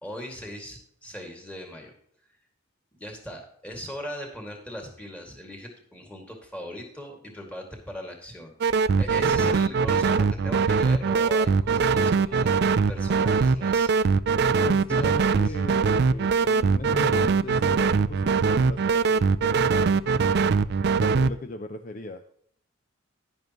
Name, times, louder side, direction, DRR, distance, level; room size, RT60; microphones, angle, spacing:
voice 1, 0.0-1.9 2.9-8.5 8.9-14.1 15.0-15.3, equal, 5° left, 1 dB, 2.2 m, -39 dB
sound 1, 8.6-21.3, right 5 dB, 50° right, 0.3 m, -22 dB
voice 2, 14.6-20.2 21.0-22.2, left 2 dB, 40° left, 8 dB, 0.5 m, -37 dB
11.0 x 10.5 x 3.0 m, 0.65 s
head